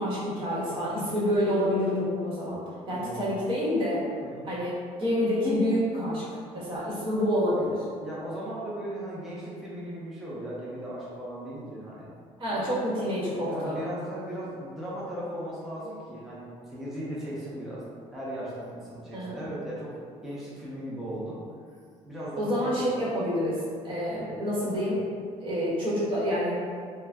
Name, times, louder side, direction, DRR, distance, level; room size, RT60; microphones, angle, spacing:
voice 1, 0.0-2.6 2.9-4.1 4.4-6.2 6.5-7.8 12.4-13.8 19.1-19.5 22.4-25.1 25.4-26.6, equal, 40° right, -8 dB, 1.1 m, -28 dB
voice 2, 2.9-3.2 4.2-4.5 8.0-12.1 12.5-12.6 13.3-17.8 18.1-21.4 22.0-22.8, right 1 dB, ahead, -9 dB, 0.6 m, -37 dB
2.5 x 2.2 x 3.3 m, 2.1 s
cardioid pair, 115°, 14 cm